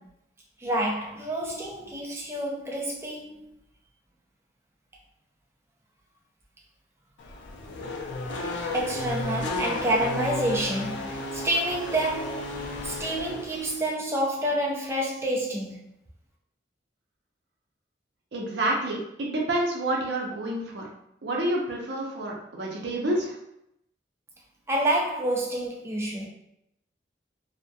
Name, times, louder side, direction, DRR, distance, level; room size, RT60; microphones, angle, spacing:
voice 1, 0.6-3.5 8.7-12.4 12.8-15.8 24.7-26.3, right 1 dB, 15° right, -2 dB, 0.3 m, -28 dB
Race car auto racing / Accelerating revving vroom, 7.2-13.9, left 2 dB, 75° left, 0.4 m, -33 dB
voice 2, 18.3-20.9 21.2-23.4, right 1 dB, 70° right, -2 dB, 0.5 m, -28 dB
2.2 x 2.1 x 2.6 m, 0.79 s
head